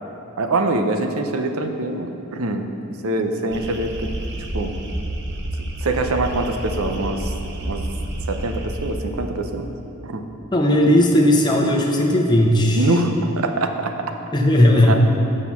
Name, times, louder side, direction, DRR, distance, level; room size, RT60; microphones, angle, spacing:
voice 1, 0.4-2.7 3.0-4.1 4.5-4.8 5.8-7.3 7.6-7.9 8.3-9.7 10.0-10.3 12.7-14.1 14.9-15.0, right 2 dB, 85° right, 6 dB, 0.7 m, -24 dB
sound 1, 3.5-9.0, right 1 dB, 55° right, 0.9 m, -29 dB
voice 2, 10.5-12.8 14.3-15.0, left 1 dB, 20° left, 0 dB, 0.8 m, -16 dB
7.4 x 6.4 x 5.8 m, 2.9 s
head